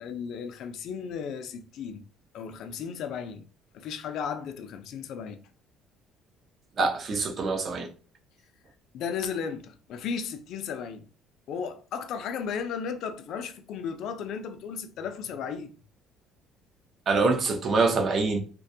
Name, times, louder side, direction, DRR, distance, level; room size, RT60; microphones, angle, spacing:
voice 1, 0.0-2.0 2.3-3.4 3.7-5.4 8.9-11.0 11.5-15.7, left 6 dB, 60° left, 0.3 m, -35 dB
voice 2, 6.8-7.9 17.1-18.4, right 3 dB, 40° right, 0.5 m, -25 dB
2.4 x 2.1 x 2.6 m
cardioid pair, 140°, 0 cm